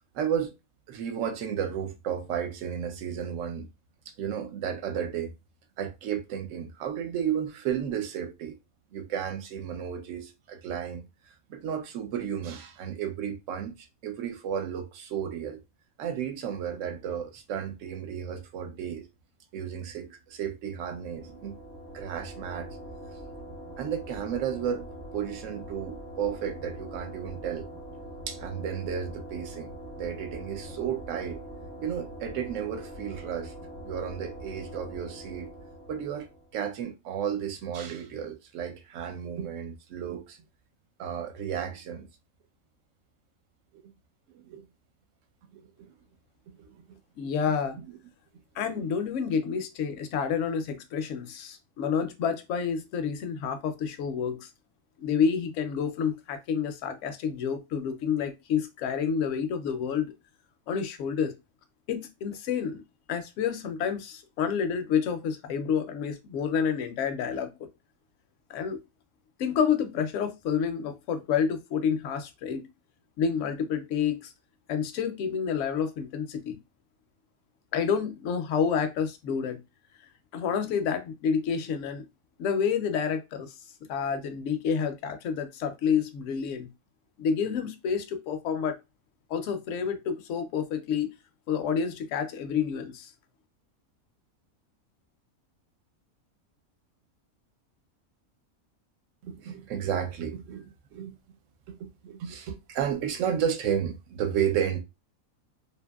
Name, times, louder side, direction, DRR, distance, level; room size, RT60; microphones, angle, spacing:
voice 1, 0.1-0.5 0.9-3.7 4.2-5.3 5.8-8.6 8.9-15.6 16.0-19.1 19.5-21.6 21.9-22.7 23.8-24.9 25.1-27.7 28.3-31.4 31.8-33.5 33.8-35.5 35.9-40.4 41.0-42.1 43.7-43.9 44.3-44.6 45.5-45.9 46.6-47.0 47.8-48.0 48.6-48.9 99.2-101.2 101.7-104.8, right 8 dB, 65° right, 0.9 m, -33 dB
sound 1, 20.7-36.6, equal, 35° right, 0.7 m, -43 dB
voice 2, 47.2-47.8 48.6-54.5 55.0-60.1 60.7-61.3 61.9-62.8 63.1-67.7 68.5-68.8 69.4-72.7 73.2-74.3 74.7-76.6 77.7-79.6 80.3-82.0 82.4-83.5 83.9-86.7 87.2-88.8 89.3-91.1 91.5-93.1, left 7 dB, 70° left, 0.8 m, -29 dB
2.8 x 2.6 x 2.3 m
omnidirectional pair, 1.5 m